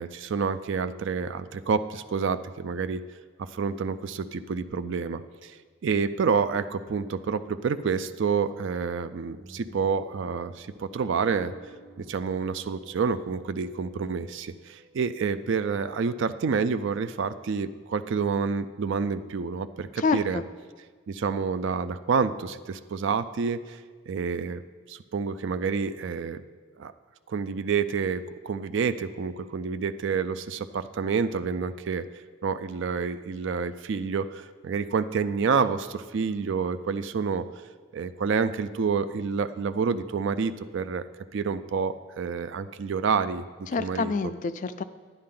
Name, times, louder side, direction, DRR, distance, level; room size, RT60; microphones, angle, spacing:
voice 1, 0.0-3.0 3.4-5.6 5.8-11.5 12.0-20.4 21.1-23.8 24.1-24.6 24.9-26.4 26.8-26.9 27.3-32.0 32.4-37.5 37.9-41.0 41.3-43.4 43.8-44.1, right 5 dB, 55° right, 12 dB, 0.4 m, -28 dB
sound 1, 9.3-16.8, right 2 dB, 40° right, 0.9 m, -53 dB
voice 2, 20.0-20.4 43.7-44.8, left 4 dB, 35° left, 11 dB, 0.3 m, -27 dB
10.5 x 10.0 x 3.8 m, 1.5 s
head